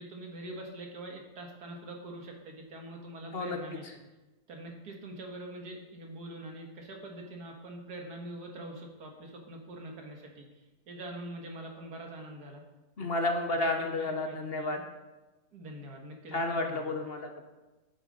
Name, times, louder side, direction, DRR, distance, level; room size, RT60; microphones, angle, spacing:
voice 1, 0.0-3.8 4.5-12.6 13.0-13.1 13.5-14.8 15.5-16.9, right 1 dB, 90° right, 2 dB, 2.1 m, -44 dB
voice 2, 13.0-14.8 16.3-17.4, left 2 dB, 45° left, 4 dB, 1.1 m, -31 dB
8.9 x 8.8 x 5.3 m, 1.1 s
omnidirectional pair, 1.6 m